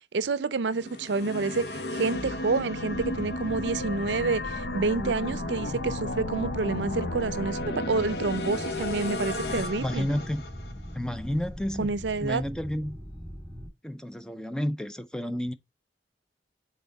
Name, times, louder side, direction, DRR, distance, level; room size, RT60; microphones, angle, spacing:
voice 1, 0.1-7.6 7.9-10.1 11.8-12.4, right 4 dB, 85° right, 0.5 m, -28 dB
sound 1, 0.7-10.9, left 2 dB, 65° left, 0.7 m, -33 dB
sound 2, 2.9-13.7, equal, 20° left, 1.8 m, -41 dB
voice 2, 9.8-10.4 10.9-11.9 12.2-13.0 13.8-15.5, equal, 5° left, 0.4 m, -31 dB
6.0 x 4.3 x 3.9 m
head